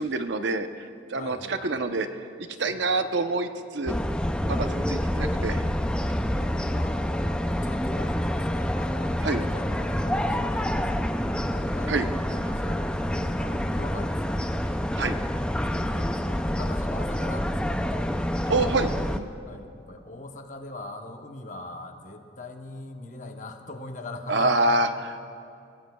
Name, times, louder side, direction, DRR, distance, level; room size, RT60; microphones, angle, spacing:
voice 1, 0.0-2.3 2.6-4.0 4.4-5.6 9.2-9.4 11.9-12.1 15.0-15.2 18.5-18.9 19.2-19.3 24.3-25.2, right 2 dB, 70° right, 8 dB, 0.7 m, -26 dB
voice 2, 1.2-1.8 2.7-2.8 6.3-14.6 15.5-18.1 19.4-24.6, left 2 dB, 40° left, 4 dB, 1.0 m, -42 dB
sound 1, 3.9-19.2, equal, 5° left, 0.4 m, -27 dB
29.0 x 16.5 x 2.3 m, 2.5 s
head